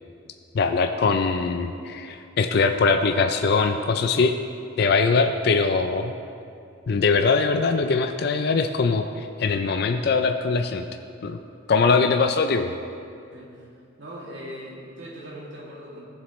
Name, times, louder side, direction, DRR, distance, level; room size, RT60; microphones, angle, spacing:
voice 1, 0.5-4.3 4.8-6.1 6.9-10.8 11.2-11.4 11.7-12.7, left 4 dB, 55° left, 6 dB, 0.4 m, -22 dB
voice 2, 13.3-13.7 14.0-16.1, equal, 70° right, -5 dB, 2.3 m, -40 dB
15.5 x 7.4 x 3.1 m, 2.5 s
head